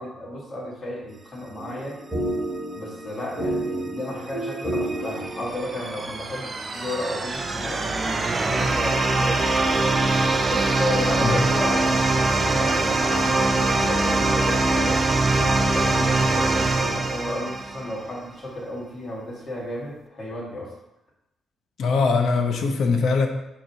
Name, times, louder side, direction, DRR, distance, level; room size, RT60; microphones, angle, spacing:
voice 1, 0.0-2.0 2.7-7.9 8.5-9.5 10.5-15.0 15.6-20.7, left 1 dB, 30° left, -4 dB, 2.0 m, -33 dB
sound 1, 1.6-5.9, right 1 dB, 5° right, 2.3 m, -30 dB
sound 2, 4.3-18.1, right 2 dB, 25° right, 0.5 m, -23 dB
voice 2, 21.8-23.3, left 4 dB, 65° left, 4 dB, 0.8 m, -21 dB
6.6 x 3.0 x 5.6 m, 0.91 s
cardioid pair, 145°, 0 cm